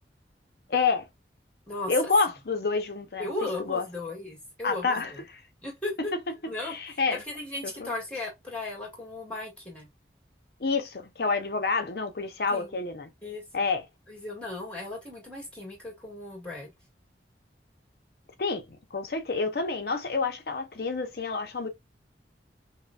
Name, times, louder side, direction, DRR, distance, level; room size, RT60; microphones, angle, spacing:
voice 1, 0.7-1.1 1.9-3.3 3.7-3.8 4.6-5.4 6.6-7.2 7.6-7.9 10.6-13.1 13.5-13.8 18.4-18.6 18.9-21.7, left 4 dB, 60° left, 0.6 m, -28 dB
voice 2, 1.7-2.1 3.2-5.2 5.6-6.1 6.5-9.9 12.5-12.8 13.2-13.4 14.1-16.7, left 2 dB, 5° left, 1.8 m, -36 dB
5.4 x 2.2 x 2.3 m
head